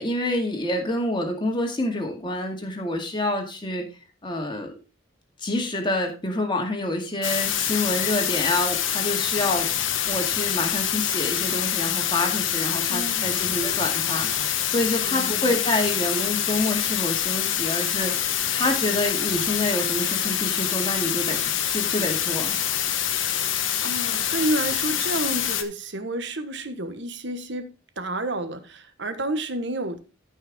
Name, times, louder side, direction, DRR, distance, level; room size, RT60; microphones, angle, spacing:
voice 1, 0.0-3.9 4.2-4.7 5.4-9.7 10.1-18.3 18.5-21.4 21.7-22.6, left 1 dB, 25° left, 2.1 m, -27 dB
sound 1, 7.2-25.6, left 10 dB, 80° left, 1.1 m, -26 dB
voice 2, 12.9-13.4 15.0-15.5 23.4-23.5 23.8-27.7 28.0-30.0, right 1 dB, 65° right, 1.3 m, -30 dB
14.0 x 5.6 x 3.6 m
head